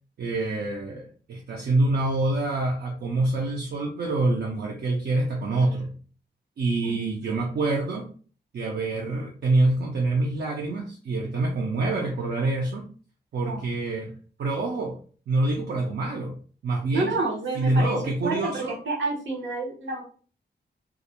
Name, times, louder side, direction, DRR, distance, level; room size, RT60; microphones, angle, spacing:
voice 1, 0.2-5.9 6.6-8.1 8.5-12.9 13.3-14.1 14.4-15.0 15.3-16.4 16.6-17.1 17.6-18.8, right 2 dB, 60° right, 0 dB, 0.4 m, -26 dB
voice 2, 16.9-18.0 18.2-20.0, right 3 dB, 90° right, -2 dB, 0.9 m, -29 dB
2.4 x 2.1 x 2.8 m, 0.41 s
wide cardioid pair, 160°, 19 cm